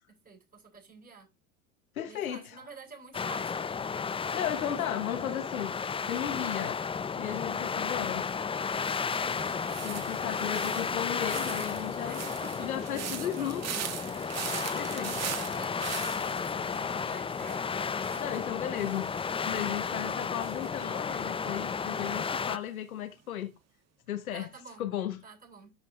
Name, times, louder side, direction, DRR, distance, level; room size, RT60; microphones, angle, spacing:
voice 1, 0.1-1.3 2.1-3.7 4.2-4.8 9.0-9.5 9.9-10.6 12.0-12.7 13.1-13.6 14.6-17.7 19.8-20.2 24.3-24.9 25.2-25.7, right 4 dB, 20° right, 7.8 m, -50 dB
voice 2, 1.9-2.6 4.3-6.8 7.2-8.3 9.8-12.2 12.6-13.6 14.0-15.1 18.2-19.1 19.5-23.5 24.1-24.5 24.8-25.2, left 10 dB, 80° left, 1.3 m, -35 dB
sound 1, 3.1-22.6, left 6 dB, 15° left, 0.6 m, -33 dB
sound 2, 8.7-21.8 22.0-22.5, right 9 dB, 40° right, 2.1 m, -42 dB
13.5 x 6.3 x 3.2 m
hypercardioid pair, 75°, 42 cm